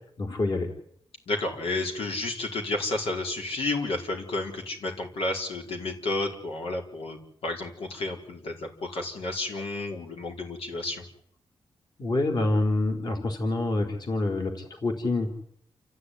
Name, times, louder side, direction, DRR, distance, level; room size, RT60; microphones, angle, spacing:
voice 1, 0.2-0.7 12.0-15.4, left 2 dB, 45° left, 4 dB, 3.9 m, -27 dB
voice 2, 1.3-11.0, left 2 dB, 80° left, 2 dB, 5.1 m, -31 dB
29.0 x 15.5 x 9.7 m, 0.68 s
wide cardioid pair, 145°, 10 cm